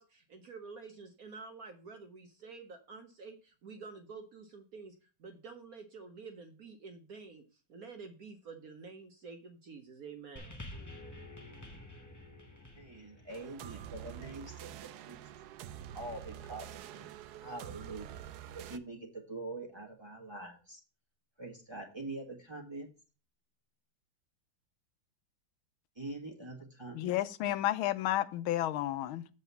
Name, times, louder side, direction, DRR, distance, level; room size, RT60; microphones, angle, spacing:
voice 1, 0.0-4.9 5.2-7.4 7.7-10.6, right 4 dB, 55° right, 1.1 m, -49 dB
sound 1, 10.4-14.9 15.7-15.8, left 1 dB, 20° left, 0.5 m, -50 dB
voice 2, 12.8-15.2 15.9-17.1 17.4-18.1 18.5-20.8 21.4-22.9 25.9-27.1, right 2 dB, 15° right, 1.3 m, -44 dB
sound 2, 13.3-18.8, right 10 dB, 85° right, 0.8 m, -47 dB
voice 3, 26.9-29.3, left 13 dB, 85° left, 1.4 m, -31 dB
7.6 x 4.0 x 6.8 m
omnidirectional pair, 2.2 m